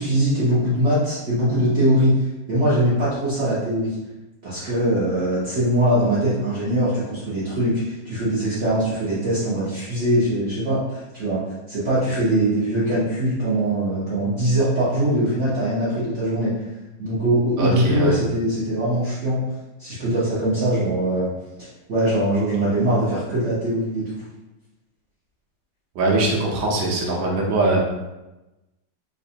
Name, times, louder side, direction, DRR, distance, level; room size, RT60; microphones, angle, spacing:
voice 1, 0.0-2.1 2.5-3.9 4.4-11.4 11.7-16.5 17.0-19.4 19.8-21.3 21.6-24.2, right 1 dB, 50° right, -11 dB, 0.9 m, -22 dB
voice 2, 17.6-18.1 25.9-27.8, right 2 dB, 70° right, -2 dB, 1.4 m, -21 dB
3.9 x 2.6 x 2.7 m, 1.0 s
omnidirectional pair, 2.3 m